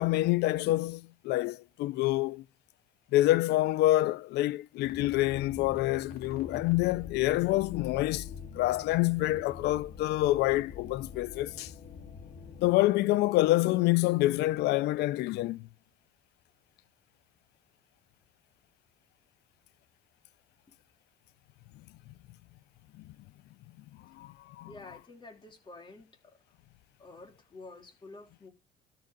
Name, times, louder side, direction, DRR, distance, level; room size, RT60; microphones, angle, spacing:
voice 1, 0.0-2.4 3.1-8.3 8.5-11.7 12.6-15.7 24.2-24.7, left 17 dB, 80° left, 0.5 m, -27 dB
sound 1, 4.8-12.7, left 6 dB, 60° left, 2.2 m, -45 dB
voice 2, 24.6-26.4 27.0-28.5, left 2 dB, 30° left, 3.6 m, -49 dB
13.0 x 5.7 x 5.2 m
cardioid pair, 110°, 17 cm